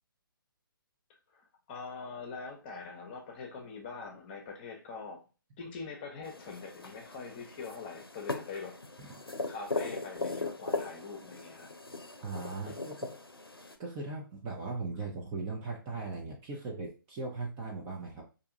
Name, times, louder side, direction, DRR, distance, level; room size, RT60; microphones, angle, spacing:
voice 1, 1.3-5.2 5.6-8.8 9.5-11.7 12.6-12.7, left 4 dB, 25° left, 0.8 m, -43 dB
sound 1, 6.2-13.7, left 3 dB, 85° left, 0.6 m, -39 dB
voice 2, 12.2-13.1 13.8-18.2, right 3 dB, 20° right, 0.6 m, -39 dB
4.5 x 2.7 x 2.6 m
figure-of-eight pair, 135°, 12 cm